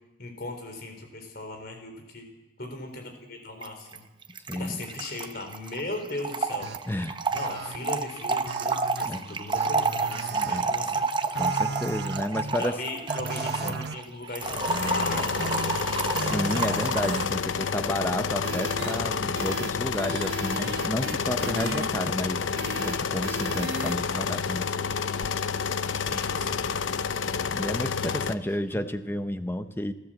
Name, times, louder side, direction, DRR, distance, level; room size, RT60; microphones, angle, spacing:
voice 1, 0.2-2.3 2.6-4.1 4.5-6.7 7.3-11.3 12.6-15.6 22.6-22.9 26.0-26.7 27.8-28.1 28.7-28.8, left 2 dB, 50° left, 5 dB, 4.1 m, -38 dB
Trickle dribble / Fill (with liquid), 3.6-3.7 3.9-4.0 4.2-17.3, right 4 dB, 25° right, 0.8 m, -30 dB
voice 2, 4.5-4.8 6.9-7.2 9.0-9.4 10.3-10.8 11.4-12.8 13.6-13.8 15.7-15.8 16.2-22.5 22.8-24.7 27.5-29.9, left 1 dB, 10° left, 9 dB, 0.8 m, -31 dB
sound 1, 6.6-6.8 7.4-7.8 8.5-9.1 9.6-10.6 11.3-12.6 13.1-13.9 14.7-15.8 16.1-17.3 18.4-19.0 19.4-19.7 20.0-21.9 22.6-23.0 23.2-24.0, right 4 dB, 55° right, 0.9 m, -36 dB
sound 2, 14.4-28.3, left 5 dB, 80° left, 0.7 m, -29 dB
28.0 x 13.5 x 7.7 m, 1.1 s
head